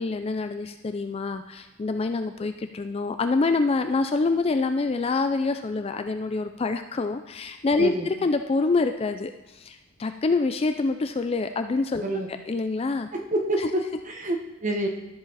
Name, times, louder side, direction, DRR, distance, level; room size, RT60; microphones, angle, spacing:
voice 1, 0.0-12.0 12.5-13.1 13.6-13.7, left 3 dB, 25° left, 8 dB, 0.3 m, -26 dB
voice 2, 13.1-14.9, right 1 dB, 35° right, 2 dB, 1.1 m, -27 dB
13.5 x 4.9 x 4.0 m, 1.0 s
head